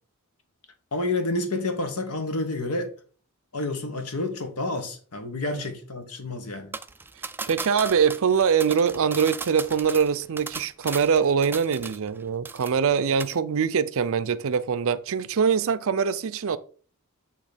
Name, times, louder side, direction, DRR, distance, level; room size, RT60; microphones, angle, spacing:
voice 1, 0.9-2.9 3.5-6.7, left 2 dB, 85° left, 1.3 m, -29 dB
sound 1, 6.7-12.2 12.5-12.9 13.2-13.4, right 4 dB, 10° right, 0.3 m, -36 dB
voice 2, 7.5-16.6, right 6 dB, 65° right, 0.5 m, -23 dB
8.3 x 3.0 x 5.1 m
head